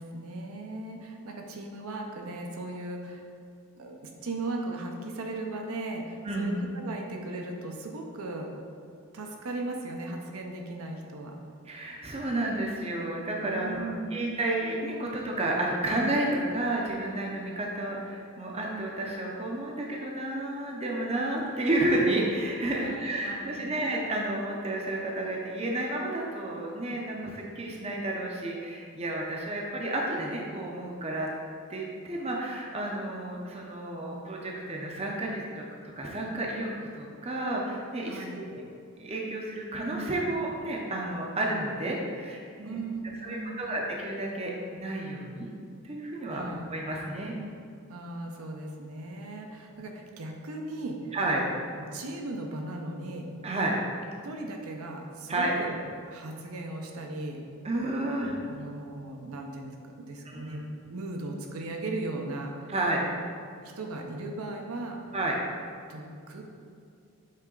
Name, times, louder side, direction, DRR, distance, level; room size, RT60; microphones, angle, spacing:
voice 1, 0.0-3.3 3.8-8.5 9.1-11.3 13.5-14.3 22.8-23.8 38.1-38.4 42.6-43.8 46.3-46.7 47.9-51.2 51.7-53.3 54.2-55.8 56.1-57.4 58.4-62.5 63.6-65.1 65.9-66.4, right 2 dB, 75° right, 2 dB, 0.7 m, -37 dB
voice 2, 6.2-6.6 11.7-31.3 31.7-35.6 36.0-38.6 39.0-42.8 43.2-45.5 45.8-46.4 46.7-47.3 51.1-51.5 53.4-53.8 55.3-55.5 57.6-58.4 60.3-60.6 62.7-63.0 65.1-65.4, right 1 dB, 25° right, -2 dB, 0.6 m, -31 dB
7.4 x 3.3 x 3.8 m, 2.3 s
head